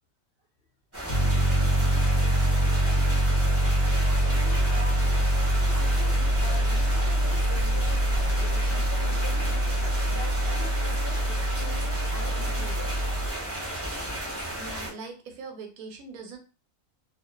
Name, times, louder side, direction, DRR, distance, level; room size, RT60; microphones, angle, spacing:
sound 1, 0.9-14.9, right 1 dB, 15° right, 0.5 m, -34 dB
Piano, 1.1-13.3, right 1 dB, 60° right, 0.7 m, -24 dB
voice 1, 4.0-5.4 5.7-13.0, left 3 dB, 55° left, -3 dB, 0.7 m, -43 dB
voice 2, 14.6-16.4, right 4 dB, 85° right, 4 dB, 1.1 m, -41 dB
2.4 x 2.3 x 2.2 m, 0.33 s
omnidirectional pair, 1.5 m